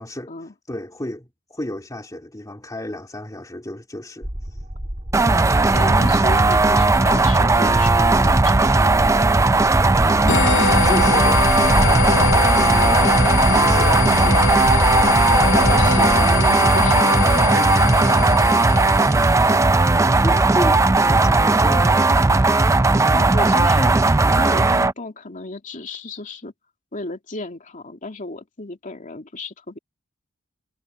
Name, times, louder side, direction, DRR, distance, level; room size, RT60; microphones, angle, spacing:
voice 1, 0.0-0.3 0.7-4.6 10.0-14.5 17.4-18.1 19.2-19.6 20.1-22.0, left 1 dB, 20° left, 2.5 m, -33 dB
sound 1, 4.2-16.3, equal, 35° right, 2.9 m, -29 dB
sound 2, 5.1-24.9, right 3 dB, 15° right, 0.4 m, -16 dB
voice 2, 5.7-9.1 15.5-17.2 19.5-19.6 23.1-24.0 24.4-26.5 26.9-29.8, left 2 dB, 40° left, 2.5 m, -33 dB
sound 3, 10.3-19.6, left 5 dB, 65° left, 0.8 m, -23 dB
head